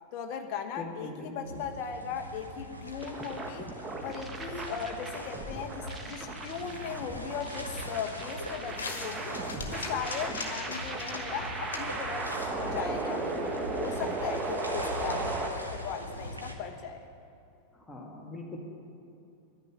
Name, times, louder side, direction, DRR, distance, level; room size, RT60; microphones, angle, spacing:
voice 1, 0.1-3.7 4.0-9.4 9.7-12.3 12.6-17.0, left 7 dB, 45° left, 4 dB, 1.2 m, -38 dB
voice 2, 0.8-1.6 17.7-18.6, left 2 dB, 10° left, -2 dB, 2.2 m, -42 dB
sound 1, 1.4-16.5, equal, 90° right, 1.3 m, -42 dB
sound 2, 3.0-15.5, right 3 dB, 20° right, 1.4 m, -36 dB
sound 3, 6.6-13.5, left 4 dB, 65° left, 1.6 m, -44 dB
10.5 x 10.5 x 9.4 m, 2.6 s
figure-of-eight pair, 90°, 0 cm